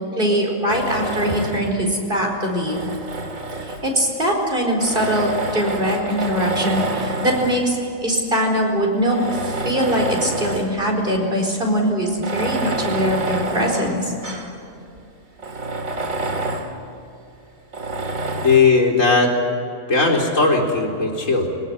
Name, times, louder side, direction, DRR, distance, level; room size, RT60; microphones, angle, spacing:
voice 1, 0.2-2.8 3.6-14.1, equal, 35° right, 1 dB, 4.7 m, -22 dB
Tools, 0.7-1.8 2.5-4.1 4.8-7.7 8.4-8.5 9.0-10.8 11.2-11.3 12.1-14.6 15.0-15.1 15.4-16.8 17.7-18.7, right 2 dB, 65° right, 2.6 m, -27 dB
voice 2, 18.4-19.3 19.9-21.5, left 4 dB, 60° left, 0 dB, 4.1 m, -17 dB
22.5 x 19.0 x 9.6 m, 2.7 s
omnidirectional pair, 1.5 m